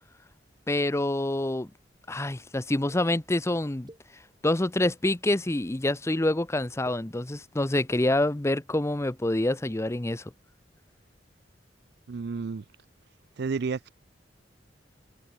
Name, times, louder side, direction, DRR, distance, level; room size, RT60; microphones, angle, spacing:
voice 1, 0.7-1.7 2.1-3.9 4.4-10.2, left 1 dB, 15° left, 0.7 m, -26 dB
sound 1, 2.9-3.0 3.9-4.0 4.6-5.0 5.6-6.0 6.7-7.0 7.7-7.9, right 1 dB, 25° right, 7.3 m, -49 dB
voice 2, 12.1-12.6 13.4-13.9, right 4 dB, 65° right, 0.4 m, -31 dB
open air
head